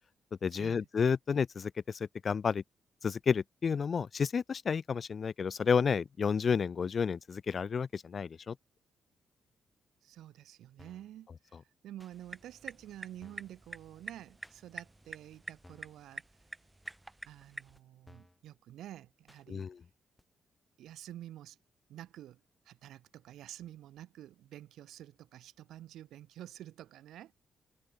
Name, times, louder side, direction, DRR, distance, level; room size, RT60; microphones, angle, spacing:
voice 1, 0.4-2.6 3.0-8.6 19.5-19.8, left 6 dB, 55° left, 0.3 m, -31 dB
voice 2, 10.0-16.2 17.2-19.7 20.8-21.6 21.9-27.3, right 12 dB, 80° right, 0.8 m, -49 dB
sound 1, 10.8-11.1 12.0-12.2 12.9-13.0 13.2-13.6 14.4-14.6 15.3-15.4 15.6-16.0 16.8-17.0 17.7-17.8 18.1-18.4 19.3-19.4 20.2-20.3, left 1 dB, 15° left, 3.2 m, -59 dB
sound 2, 12.1-17.8, right 2 dB, 20° right, 2.9 m, -48 dB
hypercardioid pair, 45°, 0 cm